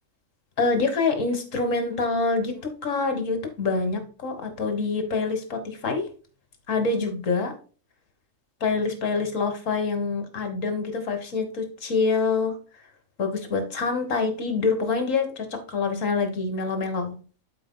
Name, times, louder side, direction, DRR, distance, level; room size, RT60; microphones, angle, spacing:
voice 1, 0.6-6.0 6.7-7.5 8.6-12.6 13.2-17.2, left 4 dB, 70° left, 7 dB, 1.8 m, -26 dB
12.0 x 4.6 x 2.2 m, 0.37 s
omnidirectional pair, 1.4 m